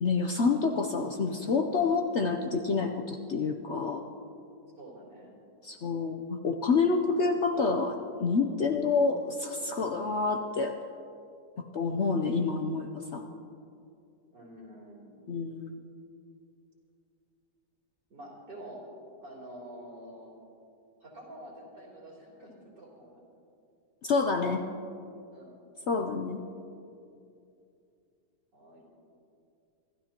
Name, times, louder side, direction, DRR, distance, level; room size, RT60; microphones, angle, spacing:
voice 1, 0.0-4.0 5.6-10.7 11.7-13.2 15.3-15.8 24.0-24.6 25.9-26.4, left 4 dB, 60° left, 4 dB, 0.8 m, -28 dB
voice 2, 4.8-5.3 14.3-15.1 18.1-18.8 19.2-20.4 21.0-23.2 25.3-25.6 28.5-28.9, right 1 dB, 85° right, -4 dB, 3.9 m, -47 dB
26.0 x 13.0 x 2.9 m, 2.6 s
omnidirectional pair, 1.8 m